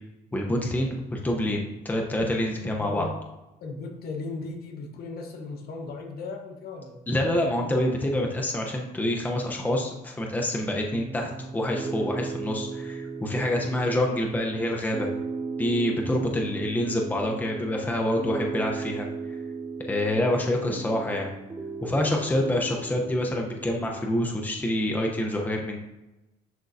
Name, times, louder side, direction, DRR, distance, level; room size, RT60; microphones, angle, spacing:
voice 1, 0.3-3.1 7.1-15.1 15.6-19.4 19.8-21.3 21.8-25.8, left 1 dB, 10° left, 1 dB, 0.8 m, -27 dB
voice 2, 2.8-3.2 3.6-7.0 16.2-16.4, left 3 dB, 65° left, 2 dB, 1.2 m, -37 dB
Piano, 10.9-24.0, right 4 dB, 15° right, 0.4 m, -36 dB
11.0 x 3.8 x 2.7 m, 0.99 s
cardioid pair, 110°, 17 cm